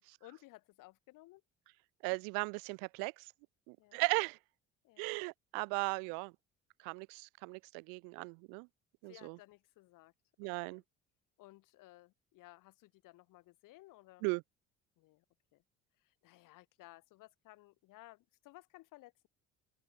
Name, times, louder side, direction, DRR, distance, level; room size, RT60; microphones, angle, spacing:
voice 1, 0.0-1.4 3.8-4.0 4.8-5.2 9.0-10.1 10.4-10.8 11.4-14.2 15.0-15.2 15.5-15.6 16.0-19.3, left 18 dB, 60° left, 1.2 m, -58 dB
voice 2, 2.0-3.3 3.7-4.4 5.0-6.3 6.8-8.7 9.0-9.4 10.4-10.8 14.2-14.4, right 40 dB or more, 65° right, 0.5 m, -37 dB
open air
hypercardioid pair, 55°, 37 cm